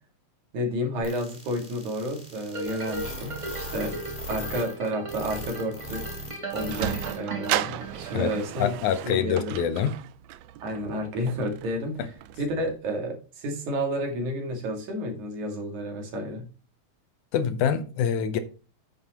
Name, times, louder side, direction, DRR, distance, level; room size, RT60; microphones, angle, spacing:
voice 1, 0.5-4.0 4.3-6.0 6.5-8.7 9.0-9.5 10.6-12.1 12.4-16.5, equal, 70° right, 3.5 m, -31 dB
sound 1, 1.0-7.2 7.4-7.5 8.0-8.1, equal, 5° left, 5.1 m, -38 dB
sound 2, 2.5-8.8 9.3-9.4, right 3 dB, 30° right, 0.5 m, -37 dB
Sliding door, 6.2-12.8, right 14 dB, 85° right, 1.5 m, -35 dB
voice 2, 8.6-10.0 12.0-12.1 17.3-18.4, left 8 dB, 75° left, 2.2 m, -25 dB
9.7 x 8.9 x 3.0 m
omnidirectional pair, 3.6 m